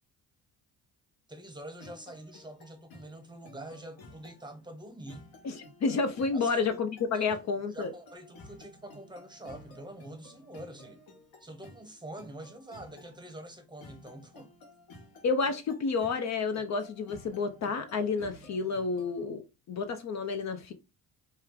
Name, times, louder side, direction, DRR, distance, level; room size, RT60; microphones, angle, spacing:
voice 1, 1.3-5.3 6.3-6.6 7.1-11.0 11.4-14.5, right 1 dB, 10° right, 0.8 m, -46 dB
sound 1, 1.8-19.2, left 1 dB, 65° left, 1.3 m, -54 dB
voice 2, 5.4-7.9 15.2-19.4 19.7-20.7, left 4 dB, 45° left, 0.5 m, -30 dB
3.1 x 2.2 x 3.6 m
supercardioid pair, 85°, 39 cm